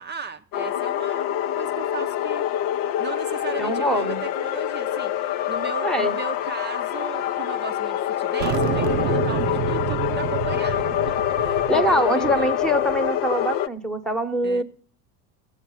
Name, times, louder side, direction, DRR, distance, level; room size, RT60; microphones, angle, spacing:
voice 1, 0.0-2.4 3.0-12.7 14.4-14.6, right 5 dB, 25° right, 0.6 m, -36 dB
sound 1, 0.5-13.7, left 11 dB, 45° left, 0.6 m, -25 dB
voice 2, 3.6-4.2 5.8-6.1 11.7-14.6, equal, ahead, 1.0 m, -23 dB
sound 2, 8.4-13.1, right 10 dB, 85° right, 0.7 m, -29 dB
14.5 x 8.1 x 5.7 m
hypercardioid pair, 85°, 47 cm